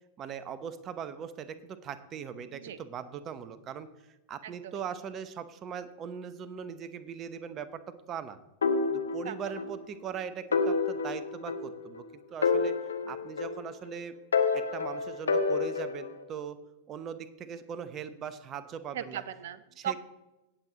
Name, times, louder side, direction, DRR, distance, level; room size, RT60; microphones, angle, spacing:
voice 1, 0.2-3.9 4.3-8.4 8.9-12.0 12.3-12.8 13.1-14.2 14.5-16.6 16.9-19.2 19.8-19.9, right 7 dB, 30° right, 13 dB, 0.9 m, -40 dB
voice 2, 4.4-4.8 9.2-9.3 13.1-13.2 18.9-20.0, right 9 dB, 55° right, 15 dB, 0.7 m, -38 dB
sound 1, 8.6-9.8 10.1-10.2 10.5-12.0 12.4-13.9 14.3-16.2, left 4 dB, 70° left, 1.1 m, -29 dB
17.5 x 7.8 x 3.0 m, 0.99 s
figure-of-eight pair, 90°, 0 cm